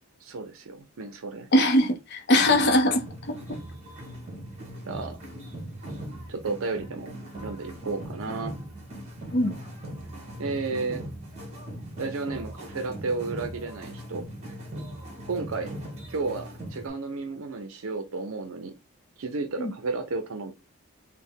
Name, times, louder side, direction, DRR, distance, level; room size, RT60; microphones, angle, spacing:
voice 1, 0.2-1.5 4.9-5.2 6.3-7.1 7.4-8.5 10.4-11.0 12.0-14.5 15.3-15.7 16.1-18.7 19.2-20.5, right 3 dB, 65° right, 0.5 m, -32 dB
voice 2, 1.5-3.4 9.3-9.5 19.6-19.7, left 1 dB, 45° left, 0.6 m, -21 dB
sound 1, 2.3-16.9, right 1 dB, 30° right, 1.3 m, -40 dB
4.1 x 2.1 x 3.6 m
head